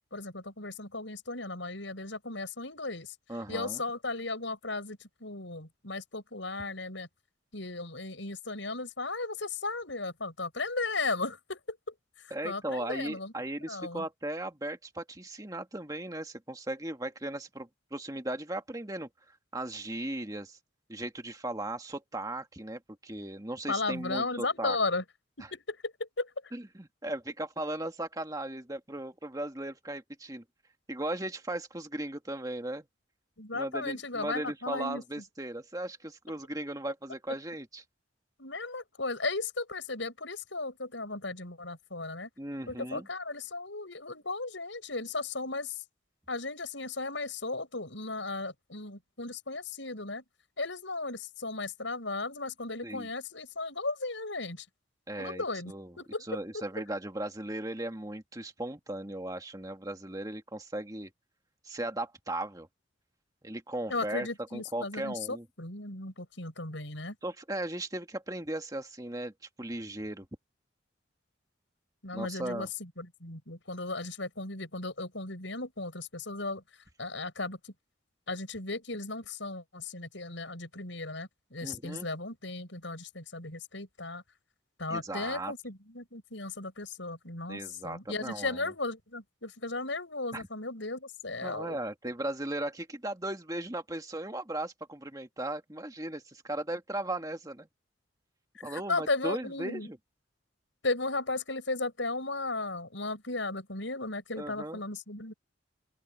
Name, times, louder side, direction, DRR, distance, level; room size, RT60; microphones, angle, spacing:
voice 1, 0.1-3.1 3.5-7.1 7.5-11.9 12.2-14.0 23.7-25.0 25.4-26.3 33.4-35.0 38.4-42.3 42.7-45.7 46.3-50.2 50.6-54.6 55.2-56.3 56.5-56.6 63.9-67.1 72.0-76.6 77.0-77.6 78.3-84.2 84.8-91.8 98.6-99.9 100.8-105.3, left 3 dB, 70° left, 6.4 m, -36 dB
voice 2, 3.3-3.8 12.3-19.1 19.5-20.6 20.9-24.8 25.4-25.5 26.5-30.4 30.9-32.9 33.5-37.8 42.4-43.1 52.8-53.1 55.1-56.0 56.3-61.1 61.6-62.7 63.4-65.5 67.2-69.3 69.6-70.3 72.1-72.7 81.6-82.1 84.9-85.5 87.5-88.7 90.3-90.5 91.4-97.7 98.6-100.0 104.4-104.8, right 1 dB, 20° right, 1.8 m, -37 dB
open air
head